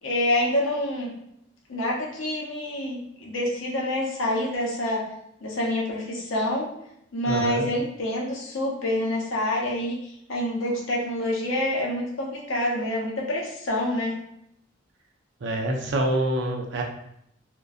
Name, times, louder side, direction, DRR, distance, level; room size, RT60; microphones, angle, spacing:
voice 1, 0.0-1.1 1.7-5.1 5.4-6.7 7.1-14.2, left 1 dB, 85° left, -2 dB, 0.7 m, -27 dB
voice 2, 7.3-7.7 15.4-16.8, right 1 dB, 65° right, 1 dB, 0.5 m, -26 dB
2.5 x 2.1 x 2.3 m, 0.76 s
head